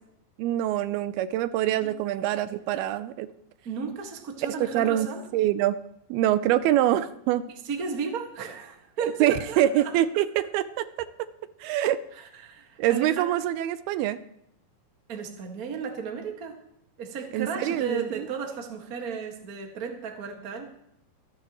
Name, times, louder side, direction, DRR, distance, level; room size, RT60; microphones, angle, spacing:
voice 1, 0.4-3.3 4.4-5.1 5.3-5.8 6.1-7.5 9.2-11.1 11.6-12.0 12.8-14.2 17.3-18.3, right 12 dB, 85° right, 13 dB, 2.5 m, -25 dB
voice 2, 1.7-2.0 3.6-5.2 7.6-9.9 12.1-13.3 15.1-16.6 17.0-20.6, right 5 dB, 40° right, 3 dB, 1.3 m, -34 dB
25.5 x 10.5 x 3.1 m, 0.76 s
omnidirectional pair, 4.4 m